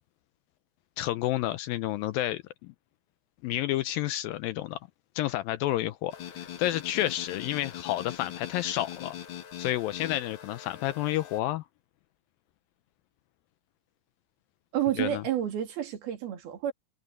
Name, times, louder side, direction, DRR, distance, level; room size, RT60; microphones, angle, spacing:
voice 1, 1.0-2.7 3.4-4.8 5.2-9.2 9.6-11.6 15.0-15.2, left 14 dB, 80° left, 2.2 m, -30 dB
sound 1, 6.1-11.4, left 10 dB, 60° left, 1.4 m, -41 dB
voice 2, 14.7-16.7, right 11 dB, 70° right, 4.4 m, -30 dB
omnidirectional pair, 4.5 m